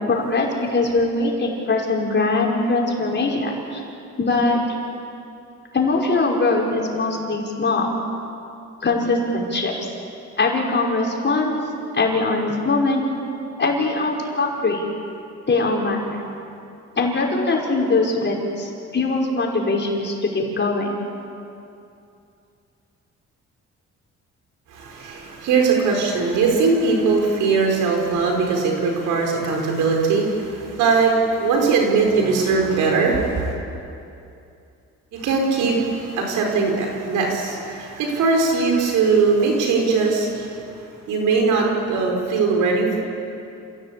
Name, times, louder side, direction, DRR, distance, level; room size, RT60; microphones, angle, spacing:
voice 1, 0.1-3.8 4.2-4.6 5.7-7.9 8.8-9.8 10.4-11.6 11.9-13.1 13.6-14.8 15.5-16.2 17.0-21.0, left 3 dB, 35° left, -1 dB, 5.6 m, -21 dB
voice 2, 24.7-33.6 35.1-43.0, right 4 dB, 90° right, 0 dB, 5.2 m, -20 dB
28.0 x 17.0 x 8.6 m, 2.6 s
cardioid pair, 90°, 30 cm